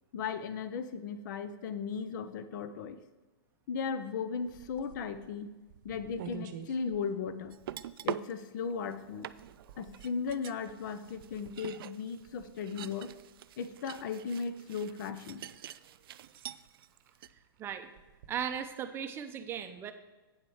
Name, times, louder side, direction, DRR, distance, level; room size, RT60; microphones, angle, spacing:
voice 1, 0.1-3.0 3.7-5.5 5.8-7.5 8.0-9.3 9.8-13.1 13.6-15.4, left 5 dB, 50° left, 12 dB, 0.8 m, -36 dB
sound 1, 4.4-18.9, right 7 dB, 50° right, 0.9 m, -54 dB
sound 2, 7.5-8.3 8.9-9.0 9.2-16.9 17.1-17.3, right 12 dB, 65° right, 0.4 m, -44 dB
voice 2, 17.6-17.9 18.3-19.9, right 8 dB, 15° right, 7 dB, 0.6 m, -37 dB
8.9 x 7.5 x 4.8 m, 1.2 s
hypercardioid pair, 150°, 13 cm